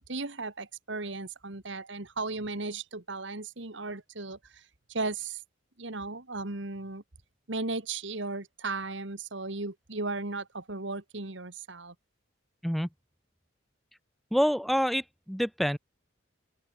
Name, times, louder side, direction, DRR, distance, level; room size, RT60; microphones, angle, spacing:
voice 1, 0.0-4.6 4.9-5.4 5.8-7.0 7.5-11.9, right 3 dB, 65° right, 2.0 m, -36 dB
voice 2, 14.3-15.8, equal, ahead, 0.6 m, -27 dB
head